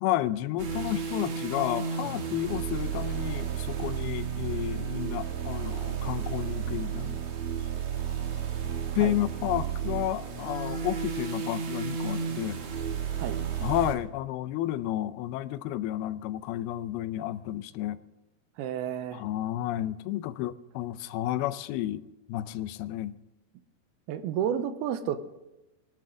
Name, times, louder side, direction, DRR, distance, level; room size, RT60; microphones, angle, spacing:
voice 1, 0.0-7.2 9.0-12.6 13.6-18.0 19.1-23.2, left 13 dB, 85° left, 2.6 m, -31 dB
sound 1, 0.6-14.0, right 7 dB, 55° right, 2.3 m, -32 dB
voice 2, 18.6-19.2 24.1-25.4, right 9 dB, 85° right, 2.7 m, -31 dB
21.5 x 11.5 x 3.7 m
omnidirectional pair, 4.4 m